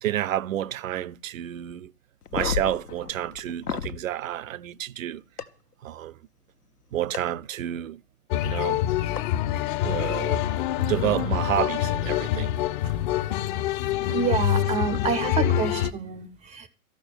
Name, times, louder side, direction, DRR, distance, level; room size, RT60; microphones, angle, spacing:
voice 1, 0.0-1.9 2.3-5.2 5.8-6.1 6.9-8.0 8.4-8.8 9.8-10.4 10.9-12.5 12.8-12.9 14.1-14.3, right 12 dB, 60° right, 0.7 m, -29 dB
sound 1, 2.2-4.0 5.4-5.5 7.1-7.2 9.2-9.3 10.6-10.8, left 7 dB, 80° left, 1.2 m, -32 dB
sound 2, 8.3-15.9, left 12 dB, 35° left, 0.7 m, -26 dB
voice 2, 14.1-16.7, right 6 dB, 15° right, 0.6 m, -28 dB
14.0 x 6.1 x 9.6 m
figure-of-eight pair, 110°, 45 cm